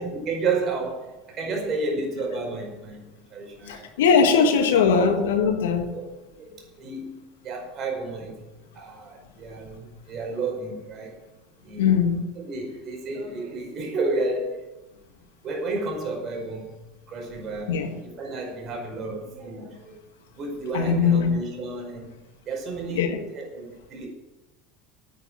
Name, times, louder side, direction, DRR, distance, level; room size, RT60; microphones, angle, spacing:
voice 1, 0.0-3.9 4.4-4.5 4.9-5.2 5.9-7.2 7.4-8.5 8.7-11.2 11.6-14.7 15.4-16.7 17.1-19.9 20.3-22.1 22.4-24.1, right 3 dB, 45° right, 5.1 m, -31 dB
voice 2, 3.7-6.0 11.8-12.2 17.7-18.0 20.7-21.4 22.9-23.2, left 6 dB, 80° left, 1.6 m, -20 dB
9.9 x 9.2 x 7.6 m
hypercardioid pair, 80°, 0 cm